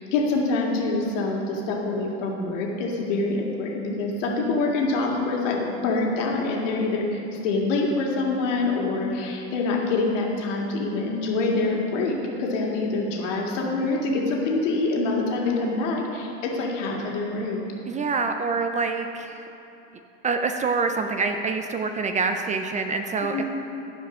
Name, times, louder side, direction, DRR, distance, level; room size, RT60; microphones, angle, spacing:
voice 1, 0.0-17.6 23.2-23.4, left 3 dB, 75° left, -1 dB, 2.1 m, -25 dB
voice 2, 17.9-19.4 20.2-23.4, right 4 dB, 20° right, 6 dB, 0.4 m, -26 dB
13.5 x 5.0 x 6.1 m, 2.9 s
supercardioid pair, 115°, 37 cm